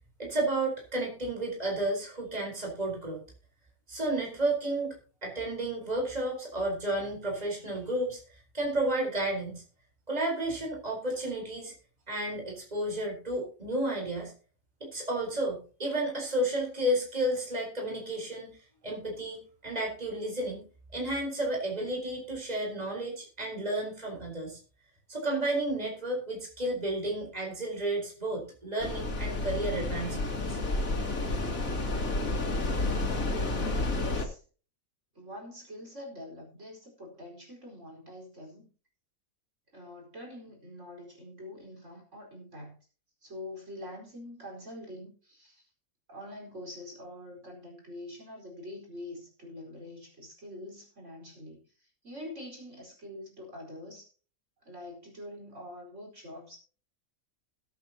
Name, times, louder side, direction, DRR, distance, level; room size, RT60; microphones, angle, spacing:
voice 1, 0.2-3.2 3.9-5.0 5.2-9.6 10.1-11.7 12.1-14.3 14.8-18.6 18.8-20.7 20.9-24.6 25.1-30.6, right 1 dB, 25° right, 0 dB, 4.2 m, -32 dB
sound 1, 28.8-34.3, left 2 dB, 70° left, 2.6 m, -30 dB
voice 2, 33.9-34.4 35.1-38.7 39.7-42.8 43.2-45.7 46.1-54.1 54.6-56.6, left 1 dB, 55° right, -1 dB, 5.0 m, -45 dB
21.0 x 8.5 x 2.9 m, 0.37 s
omnidirectional pair, 1.5 m